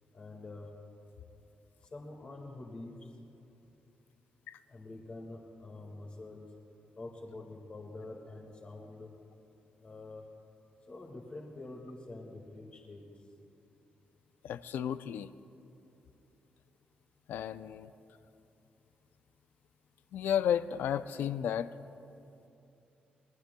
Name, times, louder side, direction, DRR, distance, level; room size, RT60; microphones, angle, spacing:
voice 1, 0.1-0.7 1.9-2.9 4.7-6.5 7.0-9.1 9.8-10.2 10.9-13.0, left 2 dB, 35° left, 0 dB, 1.9 m, -46 dB
voice 2, 14.4-15.3 17.3-17.9 20.1-21.7, left 9 dB, 85° left, 13 dB, 0.4 m, -32 dB
26.5 x 20.0 x 2.3 m, 2.8 s
cardioid pair, 125°, 3 cm